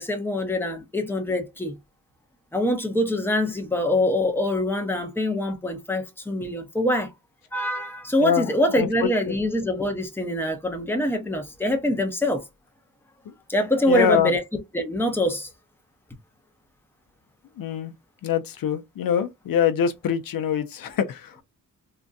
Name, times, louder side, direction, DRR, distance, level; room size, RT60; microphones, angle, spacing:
voice 1, 0.0-1.7 2.5-7.1 7.5-12.4 13.5-14.4 14.7-15.5, left 1 dB, 5° left, 0.8 m, -24 dB
voice 2, 8.2-9.3 13.9-14.3 17.6-17.9 18.2-21.4, left 9 dB, 80° left, 0.6 m, -24 dB
3.7 x 2.1 x 2.6 m
wide cardioid pair, 100°, 34 cm